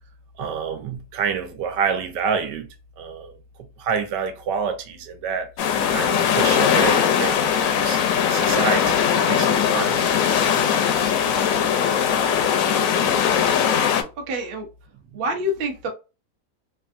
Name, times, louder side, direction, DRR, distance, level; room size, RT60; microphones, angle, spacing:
voice 1, 0.4-2.7 3.0-3.3 3.8-5.5 5.9-8.0 8.3-10.0 13.0-13.4, right 6 dB, 85° right, 1.3 m, -28 dB
sound 1, 5.6-14.0, left 8 dB, 70° left, 0.8 m, -20 dB
voice 2, 14.3-14.7 15.1-15.9, equal, 55° right, 0.6 m, -26 dB
3.3 x 2.3 x 2.5 m
omnidirectional pair, 1.8 m